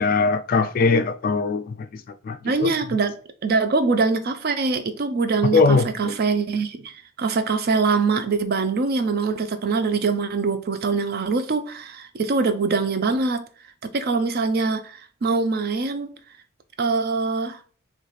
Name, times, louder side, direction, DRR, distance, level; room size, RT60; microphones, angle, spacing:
voice 1, 0.0-2.7 5.4-6.2, left 4 dB, 45° left, 0.3 m, -21 dB
voice 2, 2.4-3.2 3.4-13.4 13.8-16.1 16.8-17.6, right 4 dB, 50° right, 0.4 m, -23 dB
3.2 x 3.1 x 4.0 m
head